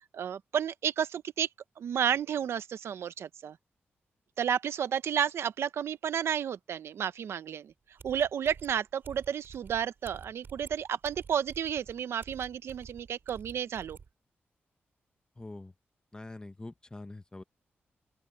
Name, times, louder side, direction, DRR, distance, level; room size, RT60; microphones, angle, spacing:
voice 1, 0.1-1.5 1.8-3.6 4.4-7.7 8.0-14.0, right 8 dB, 80° right, 0.7 m, -31 dB
sound 1, 8.0-14.1, right 5 dB, 55° right, 7.6 m, -50 dB
voice 2, 15.4-15.7 16.1-17.4, left 2 dB, 20° left, 1.1 m, -44 dB
open air
wide cardioid pair, 100°, 4 cm